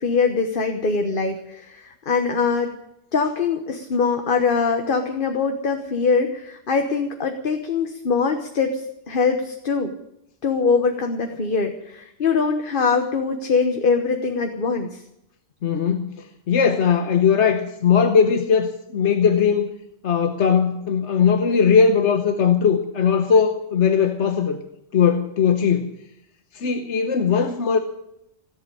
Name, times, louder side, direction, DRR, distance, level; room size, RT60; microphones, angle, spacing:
voice 1, 0.0-2.7 3.1-9.9 10.4-15.0, left 5 dB, 45° left, 1.3 m, -22 dB
voice 2, 15.6-19.7 20.0-24.6 24.9-25.9 26.5-27.8, left 6 dB, 70° left, 1.3 m, -19 dB
17.0 x 7.9 x 9.8 m
omnidirectional pair, 1.3 m